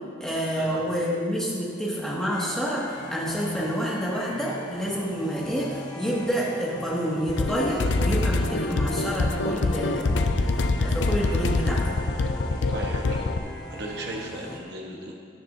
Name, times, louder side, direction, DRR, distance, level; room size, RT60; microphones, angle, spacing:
voice 1, 0.2-10.3 10.8-11.8, equal, 5° left, -6 dB, 1.9 m, -28 dB
sound 1, 2.3-14.6, left 1 dB, 20° left, 1.0 m, -40 dB
sound 2, 7.3-13.4, left 3 dB, 65° left, 0.5 m, -25 dB
voice 2, 12.7-13.3 13.7-15.2, right 1 dB, 55° right, -1 dB, 1.3 m, -36 dB
16.5 x 9.8 x 2.7 m, 2.3 s
head